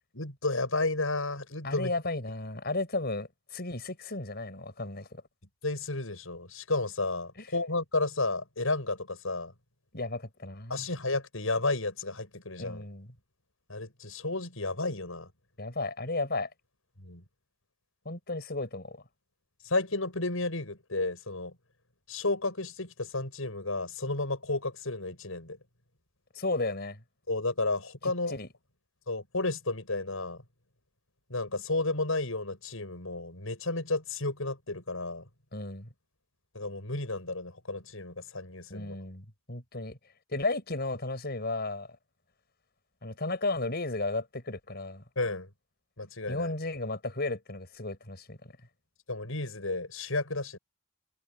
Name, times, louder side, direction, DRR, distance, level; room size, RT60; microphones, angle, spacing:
voice 1, 0.1-1.9 5.6-9.5 10.7-12.8 13.7-15.3 17.0-17.2 19.6-21.5 22.1-25.6 27.3-28.3 29.1-30.4 31.3-35.2 36.5-38.9 45.2-45.5 46.0-46.5 49.1-50.6, left 2 dB, 80° left, 6.6 m, -32 dB
voice 2, 1.6-5.2 9.9-10.9 12.6-13.1 15.6-16.5 18.0-19.0 26.3-27.0 28.3-28.5 35.5-35.9 38.7-40.0 40.3-41.9 43.0-45.0 46.3-48.4, left 2 dB, 50° left, 6.0 m, -34 dB
head